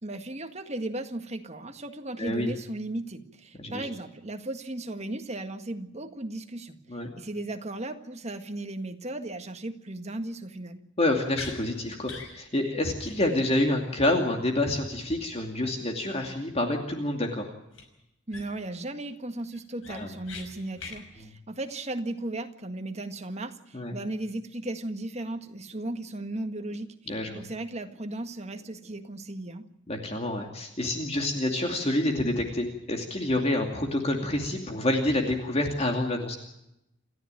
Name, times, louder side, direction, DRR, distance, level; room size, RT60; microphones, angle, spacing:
voice 1, 0.0-6.8 7.1-10.8 18.3-26.9 27.3-29.7, right 2 dB, 35° right, 6 dB, 1.8 m, -36 dB
voice 2, 2.2-2.5 3.6-3.9 6.9-7.1 11.0-17.5 19.9-20.1 23.7-23.9 27.1-27.4 29.9-36.3, left 1 dB, 30° left, 3 dB, 2.6 m, -28 dB
sound 1, 11.3-11.6 12.0-12.3 12.7-12.8 13.0-13.2 13.4-13.6 17.7-17.8 18.3-18.7 19.1-19.2 19.5-20.4 20.8-21.0, left 4 dB, 75° left, 5.7 m, -41 dB
28.5 x 14.0 x 9.1 m, 0.86 s
head